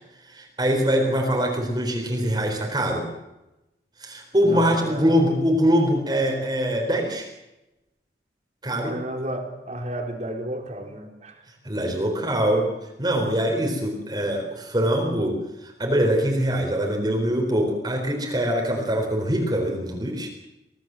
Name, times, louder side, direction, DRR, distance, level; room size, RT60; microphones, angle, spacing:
voice 1, 0.3-3.1 4.0-7.3 8.6-8.9 11.6-12.7 13.0-15.4 15.6-20.3, equal, 25° right, 1 dB, 4.3 m, -23 dB
voice 2, 4.4-5.1 8.6-11.4, right 1 dB, 40° right, 3 dB, 4.1 m, -33 dB
25.0 x 17.5 x 7.7 m, 0.96 s
head